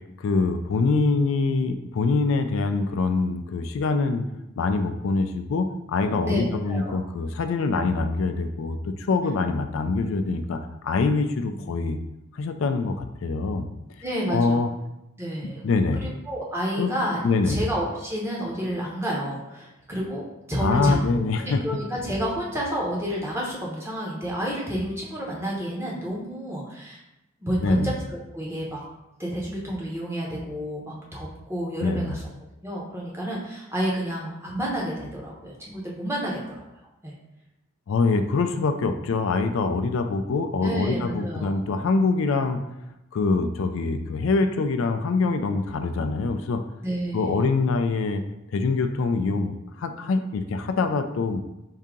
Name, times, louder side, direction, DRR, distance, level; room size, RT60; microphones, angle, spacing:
voice 1, 0.2-4.3 4.6-12.0 12.3-13.7 14.3-14.7 15.6-16.0 16.8-16.9 17.2-17.6 20.6-21.6 27.6-27.9 31.8-32.2 37.9-42.6 43.1-46.6 47.1-48.2 48.5-51.4, left 3 dB, 65° left, 8 dB, 0.3 m, -24 dB
voice 2, 6.2-7.0 14.0-14.6 15.2-15.6 15.9-27.0 27.4-28.8 29.2-32.2 32.6-36.6 37.0-37.1 40.6-41.6 46.8-47.4, equal, 10° right, -3 dB, 0.8 m, -30 dB
4.7 x 2.8 x 3.6 m, 0.91 s
head